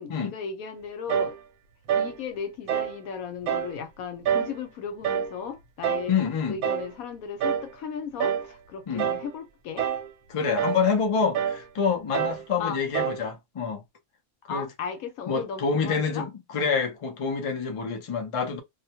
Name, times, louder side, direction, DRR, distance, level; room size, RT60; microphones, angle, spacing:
voice 1, 0.0-1.4 1.9-6.2 6.5-9.9 12.6-12.8 14.5-16.3, left 6 dB, 85° left, 1.2 m, -36 dB
sound 1, 1.1-1.4 1.9-2.2 2.7-3.0 3.5-3.8 4.3-4.6 5.0-5.4 5.8-6.1 6.6-6.9 7.4-7.7 8.2-8.5 9.0-9.3 9.8-10.1 10.6-10.8 11.3-11.6 12.1-12.5 12.9-13.2, right 8 dB, 80° right, 1.0 m, -27 dB
voice 2, 6.1-6.6 8.9-9.1 10.3-13.8 14.5-14.7 15.3-18.6, left 5 dB, 50° left, 0.3 m, -27 dB
2.6 x 2.1 x 2.8 m
omnidirectional pair, 1.5 m